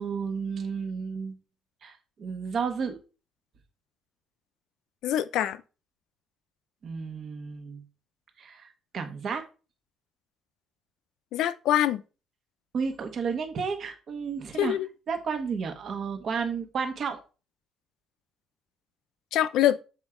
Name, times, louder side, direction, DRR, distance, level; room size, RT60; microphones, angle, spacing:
voice 1, 0.0-1.3 1.8-3.0 6.8-7.8 8.4-8.7 8.9-9.4 12.7-14.7 15.1-17.2, right 5 dB, 40° right, 1.1 m, -32 dB
voice 2, 5.0-5.6 11.3-12.0 14.6-14.9 19.3-19.8, left 12 dB, 80° left, 0.5 m, -24 dB
7.2 x 4.5 x 3.7 m
cardioid pair, 170°, 0 cm